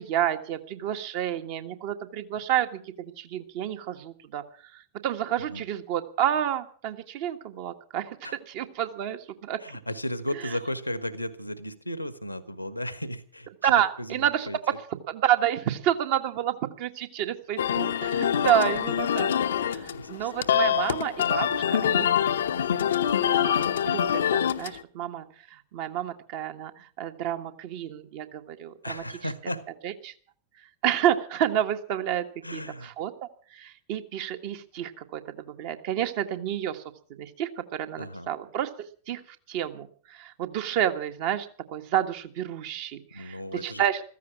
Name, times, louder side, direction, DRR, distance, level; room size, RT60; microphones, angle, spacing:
voice 1, 0.0-4.4 4.7-9.6 13.6-14.5 15.1-19.3 19.7-22.1 23.2-29.0 29.8-30.1 30.8-32.2 32.5-33.1 33.5-36.8 37.2-38.7 39.1-39.2 39.5-44.0, right 11 dB, 50° right, 7 dB, 1.6 m, -29 dB
voice 2, 9.6-13.5 14.0-14.6 18.7-18.8 19.9-20.3 20.6-20.7 28.8-29.6 32.4-32.9 38.0-38.3 43.1-43.8, left 1 dB, 90° left, 14 dB, 1.4 m, -35 dB
sound 1, 17.6-24.8, left 9 dB, 65° left, 0.8 m, -25 dB
15.0 x 14.5 x 6.0 m, 0.43 s
figure-of-eight pair, 90°, 0 cm